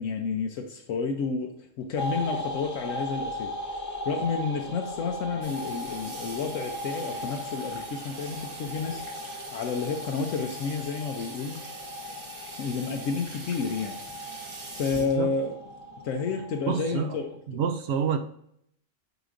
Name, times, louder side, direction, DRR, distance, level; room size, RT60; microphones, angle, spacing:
voice 1, 0.0-11.6 12.6-15.5 16.0-17.6, left 5 dB, 85° left, 1.0 m, -31 dB
sound 1, 2.0-17.3, equal, 25° left, 0.4 m, -38 dB
Water tap faucet / Sink (filling or washing), 5.4-16.3, right 2 dB, 25° right, 0.8 m, -43 dB
voice 2, 15.0-15.3 16.7-17.2 17.5-18.2, right 7 dB, 65° right, 0.8 m, -28 dB
8.1 x 5.0 x 2.5 m
omnidirectional pair, 1.3 m